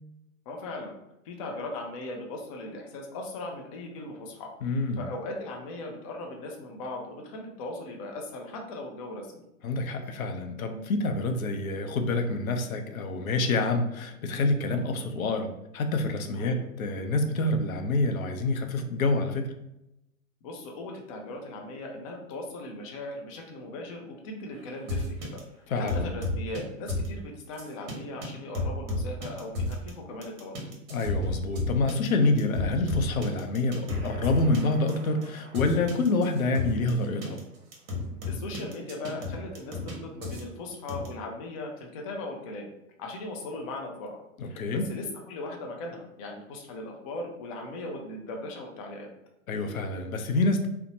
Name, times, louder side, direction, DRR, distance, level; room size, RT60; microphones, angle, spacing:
voice 1, 0.5-0.9 1.2-4.5 5.0-9.4 16.4-16.6 20.4-25.4 25.7-30.5 38.3-42.7 43.0-49.1, left 2 dB, 30° left, 1 dB, 0.4 m, -38 dB
voice 2, 4.6-5.1 9.6-19.5 25.7-26.1 30.9-37.4 44.4-44.9 49.5-50.7, left 2 dB, 80° left, 5 dB, 0.6 m, -27 dB
sound 1, 24.9-25.4 25.9-26.6 26.9-27.1 27.6-27.9 28.2-28.3 28.5-29.9 30.2-36.9 37.2-37.4 37.7-39.9 40.2-40.4 40.9-41.1, left 2 dB, 40° right, 1.0 m, -32 dB
2.6 x 2.1 x 2.7 m, 0.86 s
hypercardioid pair, 110°, 41 cm